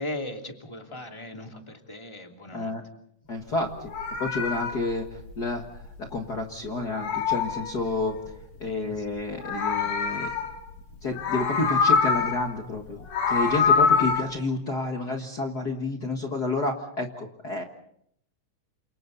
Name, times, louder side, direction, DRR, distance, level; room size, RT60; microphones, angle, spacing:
voice 1, 0.0-2.8 8.6-9.1 9.7-9.9 10.9-11.0 13.6-13.9, left 1 dB, 10° left, 2 dB, 2.5 m, -38 dB
voice 2, 3.3-3.7 4.2-5.6 6.0-8.2 8.6-10.3 11.0-17.6, left 2 dB, 40° left, 2 dB, 1.7 m, -30 dB
Meow, 3.7-6.4 6.7-8.3 9.2-10.8 11.1-12.5 12.9-14.2, left 5 dB, 70° left, 4.3 m, -25 dB
29.5 x 27.5 x 4.1 m, 0.70 s
omnidirectional pair, 3.7 m